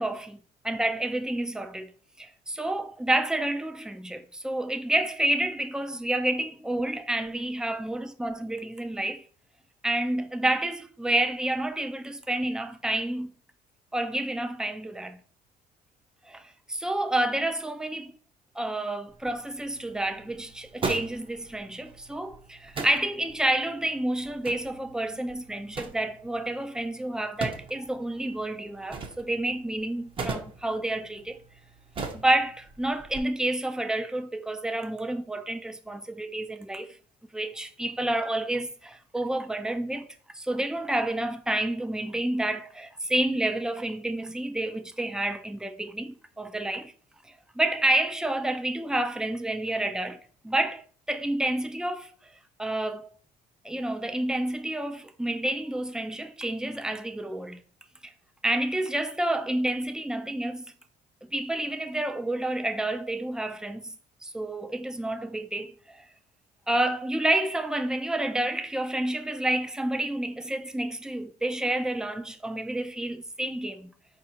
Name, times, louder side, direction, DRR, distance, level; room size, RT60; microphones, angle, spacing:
voice 1, 0.0-0.4 0.6-1.9 2.2-9.2 9.8-13.3 13.9-15.2 16.2-18.1 18.6-31.4 32.1-37.0 37.3-40.1 40.3-46.9 47.3-50.2 50.4-52.3 52.6-53.1 53.6-57.6 58.0-58.1 58.4-60.7 61.3-63.9 64.2-66.1 66.7-73.9, right 1 dB, 5° right, 0.4 m, -29 dB
sound 1, 19.1-33.2, right 4 dB, 30° right, 0.8 m, -40 dB
4.6 x 2.5 x 4.3 m
cardioid pair, 110°, 17 cm